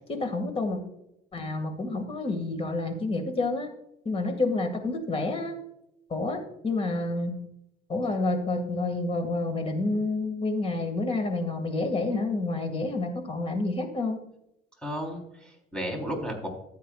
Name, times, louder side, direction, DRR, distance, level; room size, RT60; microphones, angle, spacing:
voice 1, 0.1-0.8 1.3-3.7 4.0-5.5 6.1-7.4 7.9-14.2, left 2 dB, 35° left, 6 dB, 2.1 m, -29 dB
voice 2, 14.8-16.5, equal, 5° left, 1 dB, 3.9 m, -33 dB
15.0 x 8.4 x 2.5 m, 0.81 s
cardioid pair, 110°, 17 cm